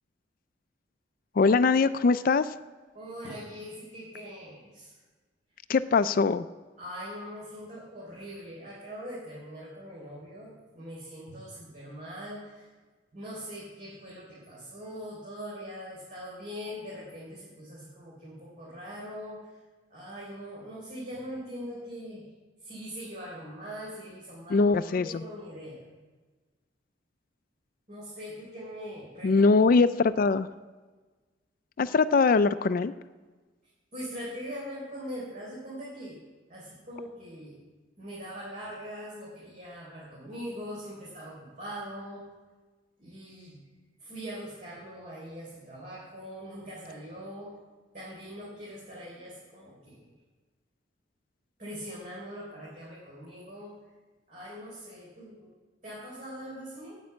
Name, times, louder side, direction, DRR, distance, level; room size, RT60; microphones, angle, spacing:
voice 1, 1.4-2.5 5.7-6.4 24.5-25.1 29.2-30.5 31.8-32.9, left 4 dB, 50° left, 12 dB, 0.4 m, -22 dB
voice 2, 2.9-4.9 6.8-12.7 13.1-19.6 19.9-22.3 22.6-25.9 27.9-29.5 33.9-36.2 36.5-37.6 38.0-42.2 43.0-43.6 44.0-47.5 47.9-50.1 51.6-53.8 54.3-55.5 55.8-57.0, equal, 45° right, -6 dB, 3.8 m, -42 dB
9.5 x 8.2 x 8.7 m, 1.3 s
head